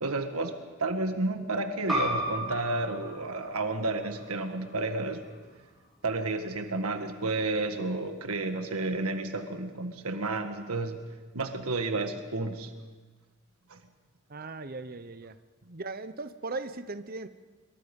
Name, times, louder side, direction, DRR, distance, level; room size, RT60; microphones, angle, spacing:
voice 1, 0.0-5.2 6.0-11.1 11.3-12.7 13.7-13.8, right 2 dB, 85° right, 6 dB, 1.6 m, -31 dB
sound 1, 1.9-7.0, equal, ahead, 6.7 m, -36 dB
voice 2, 14.3-15.4 15.7-17.3, right 3 dB, 40° right, 11 dB, 0.8 m, -38 dB
26.5 x 23.5 x 5.4 m, 1.3 s
head